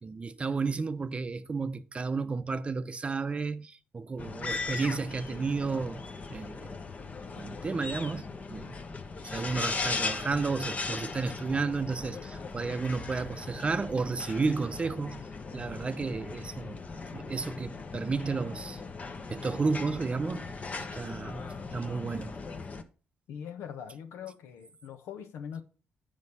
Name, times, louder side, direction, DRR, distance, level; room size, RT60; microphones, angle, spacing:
voice 1, 0.0-6.0 6.3-6.8 7.4-8.8 9.2-15.2 15.5-16.8 17.1-18.8 19.3-22.3, right 4 dB, 30° right, 0.6 m, -32 dB
sound 1, 4.2-22.8, left 4 dB, 35° left, 0.9 m, -38 dB
voice 2, 23.3-25.6, left 8 dB, 85° left, 1.1 m, -42 dB
8.0 x 5.2 x 5.5 m
cardioid pair, 95°, 4 cm